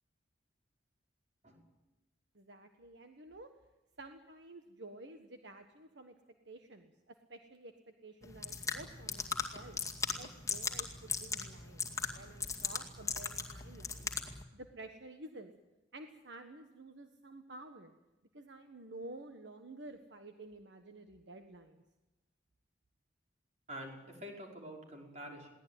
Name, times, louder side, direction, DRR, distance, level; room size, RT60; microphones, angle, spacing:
voice 1, 2.3-3.5 4.0-6.1 6.4-7.7 8.0-9.8 10.1-11.8 12.1-14.1 14.5-15.5 15.9-17.9 18.3-21.8, right 2 dB, 65° right, 6 dB, 1.4 m, -51 dB
sound 1, 8.2-14.4, left 5 dB, 15° left, 2.2 m, -39 dB
voice 2, 23.7-25.5, equal, 35° right, 0 dB, 5.5 m, -47 dB
22.0 x 17.5 x 9.3 m, 1.0 s
head